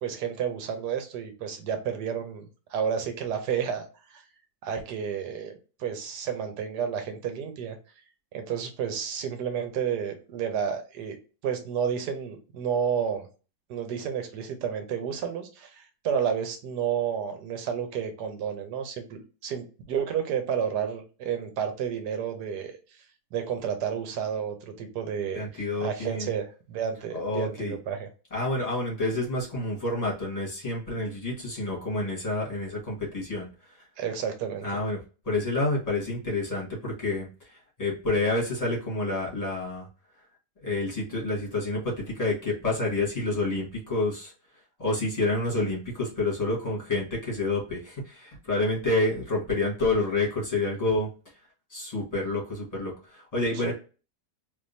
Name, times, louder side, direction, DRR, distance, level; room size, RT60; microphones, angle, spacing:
voice 1, 0.0-4.2 4.6-5.5 5.8-7.8 8.3-11.2 11.4-13.3 13.7-23.0 23.3-28.1 34.0-34.7 53.5-53.7, right 7 dB, 80° right, 6 dB, 1.4 m, -31 dB
voice 2, 25.3-26.3 27.1-27.8 28.3-33.8 34.6-35.0 35.2-39.9 40.6-44.3 44.8-51.1 51.7-53.7, left 2 dB, 25° left, -4 dB, 1.6 m, -28 dB
3.6 x 3.0 x 2.6 m, 0.35 s
omnidirectional pair, 1.7 m